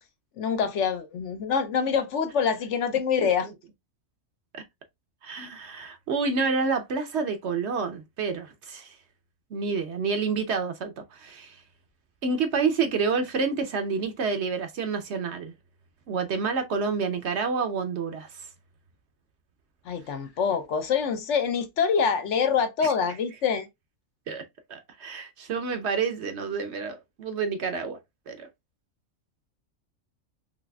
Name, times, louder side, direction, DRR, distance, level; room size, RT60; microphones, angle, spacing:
voice 1, 0.4-3.5 19.9-23.7, left 6 dB, 65° left, 0.9 m, -25 dB
voice 2, 5.2-9.0 9.5-11.6 12.2-15.5 16.1-18.5 22.8-22.9 24.3-28.0 28.3-28.5, right 5 dB, 60° right, 0.9 m, -29 dB
4.0 x 3.0 x 2.2 m
omnidirectional pair, 1.4 m